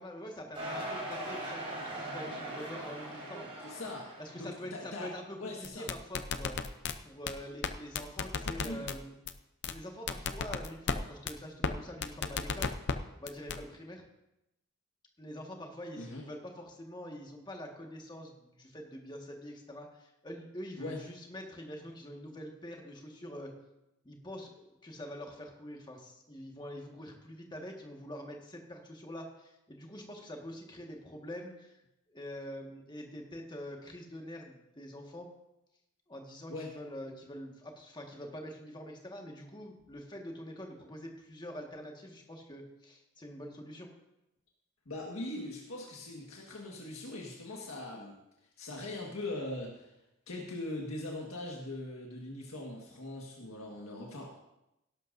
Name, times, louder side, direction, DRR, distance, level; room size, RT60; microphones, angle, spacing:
voice 1, 0.0-3.5 4.2-6.6 7.0-9.1 9.6-12.7 13.2-14.0 15.2-23.5 24.0-31.8 32.1-35.3 36.1-43.9, equal, 20° left, 1 dB, 1.7 m, -45 dB
sound 1, 0.5-4.6, right 1 dB, 30° right, 4.8 m, -40 dB
voice 2, 3.6-5.1 5.4-5.9 8.4-8.9 16.0-16.2 20.8-21.0 36.5-36.7 44.9-48.2 48.6-49.9 50.3-54.3, left 2 dB, 85° left, -2 dB, 1.7 m, -41 dB
sound 2, 5.6-6.9 7.3-7.4 7.6-7.7 8.0-9.0 9.3-9.4 9.6-9.7 10.1-11.0 11.3-11.4 11.6-11.7 12.0-13.0 13.3-13.6, left 5 dB, 55° left, 0.6 m, -32 dB
17.0 x 12.0 x 2.7 m, 0.89 s
head